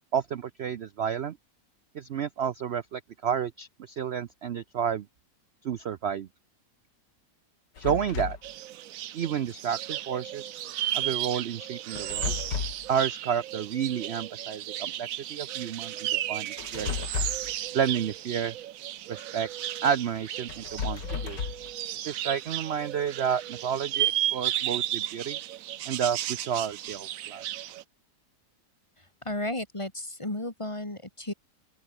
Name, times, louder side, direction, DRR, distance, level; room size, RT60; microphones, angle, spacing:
voice 1, 0.1-1.4 1.9-5.1 5.6-6.3 7.8-8.4 9.1-10.5 10.9-12.3 12.9-17.1 17.7-18.5 19.1-19.5 19.8-21.4 22.0-25.4 25.9-27.4, right 8 dB, 85° right, 0.5 m, -30 dB
sound 1, 7.8-8.5 11.9-12.9 16.6-17.6 20.5-21.7, left 6 dB, 75° left, 2.6 m, -33 dB
sound 2, 8.4-27.8, right 12 dB, 65° right, 0.9 m, -34 dB
voice 2, 29.0-31.3, left 1 dB, 15° left, 2.1 m, -34 dB
open air
omnidirectional pair, 1.9 m